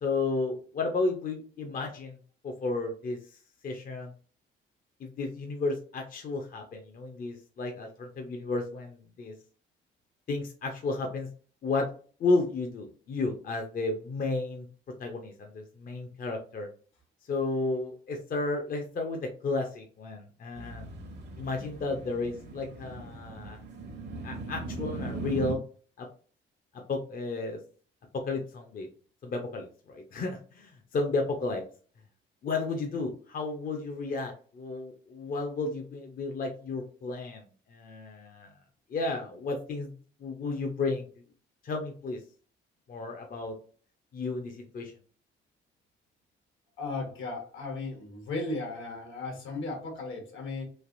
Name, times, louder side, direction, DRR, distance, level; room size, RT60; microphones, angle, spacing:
voice 1, 0.0-2.2 2.4-3.2 3.6-4.1 5.0-9.3 10.3-11.3 11.6-11.9 12.2-14.7 15.0-16.7 17.3-20.9 21.4-23.6 24.2-25.6 26.0-26.1 26.9-27.6 28.2-28.9 29.2-31.6 32.4-37.4 37.7-38.5 38.9-39.9 40.2-41.1 41.6-42.2 42.9-43.6 44.1-44.9, left 3 dB, 45° left, 3 dB, 0.6 m, -32 dB
sound 1, 20.6-25.6, right 3 dB, 60° right, 0.7 m, -39 dB
voice 2, 46.8-50.6, left 3 dB, 75° left, 2 dB, 1.2 m, -36 dB
3.2 x 2.5 x 2.5 m, 0.42 s
cardioid pair, 90°, 20 cm